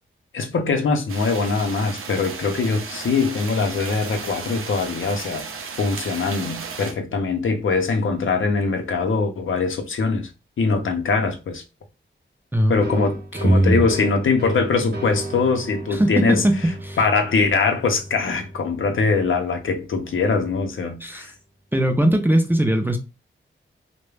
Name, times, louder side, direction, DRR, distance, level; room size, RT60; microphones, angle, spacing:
voice 1, 0.3-5.5 5.8-10.3 10.6-11.6 12.7-16.4 17.0-21.3, left 4 dB, 70° left, 0.5 m, -22 dB
sound 1, 1.1-6.9, right 5 dB, 85° right, 0.5 m, -34 dB
voice 2, 12.5-13.8 15.9-16.6 16.8-17.0 21.0-21.3 21.7-23.0, right 1 dB, 10° right, 0.4 m, -20 dB
sound 2, 12.8-20.3, right 1 dB, 55° right, 0.9 m, -35 dB
2.3 x 2.1 x 3.1 m
wide cardioid pair, 130°, 21 cm